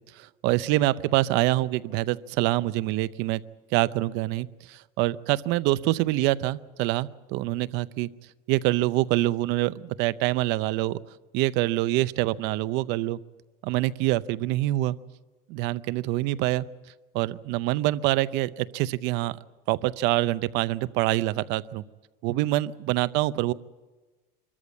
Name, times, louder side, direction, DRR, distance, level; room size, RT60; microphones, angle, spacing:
voice 1, 0.2-3.4 3.7-8.1 8.5-11.0 11.3-13.2 13.6-15.0 15.5-16.7 17.1-19.4 19.7-21.8 22.2-23.5, right 17 dB, 65° right, 16 dB, 0.7 m, -25 dB
24.5 x 13.5 x 8.3 m, 1.3 s
cardioid pair, 145°, 20 cm